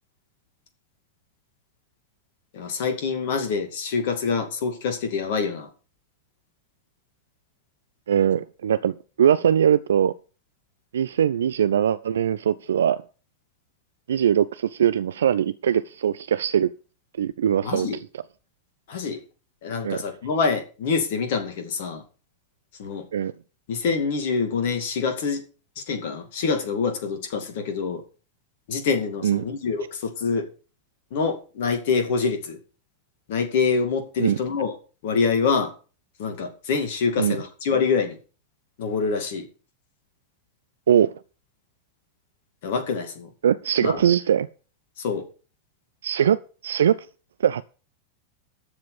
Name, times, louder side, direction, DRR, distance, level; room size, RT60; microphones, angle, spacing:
voice 1, 2.5-5.7 17.6-18.0 18.9-19.2 19.6-22.0 22.8-23.1 23.7-25.4 25.8-28.0 28.7-30.5 31.1-32.6 33.3-34.7 35.0-35.7 36.2-38.2 38.8-39.5 42.6-43.3 43.8-44.0 45.0-45.2, left 5 dB, 55° left, 2.4 m, -25 dB
voice 2, 8.1-10.1 10.9-13.0 14.1-16.7 17.2-17.9 19.8-20.0 23.1-23.3 29.2-29.4 34.2-34.4 37.2-37.4 40.9-41.1 43.4-44.5 46.0-47.1 47.4-47.6, right 9 dB, 65° right, 0.4 m, -21 dB
13.0 x 7.6 x 5.3 m
figure-of-eight pair, 90°, 0 cm